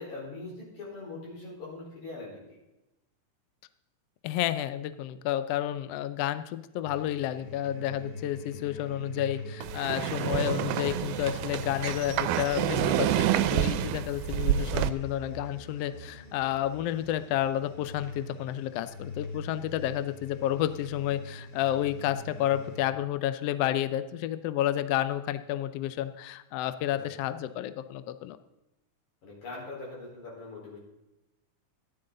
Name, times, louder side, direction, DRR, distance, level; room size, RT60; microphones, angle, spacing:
voice 1, 0.0-2.6 29.2-30.8, left 3 dB, 65° left, -4 dB, 5.8 m, -41 dB
voice 2, 4.2-28.4, left 12 dB, 85° left, 12 dB, 1.4 m, -31 dB
sound 1, 6.8-22.8, left 2 dB, 35° left, 2.4 m, -42 dB
sound 2, 9.6-14.9, right 12 dB, 90° right, 2.1 m, -28 dB
13.5 x 11.5 x 3.9 m, 0.96 s
omnidirectional pair, 3.5 m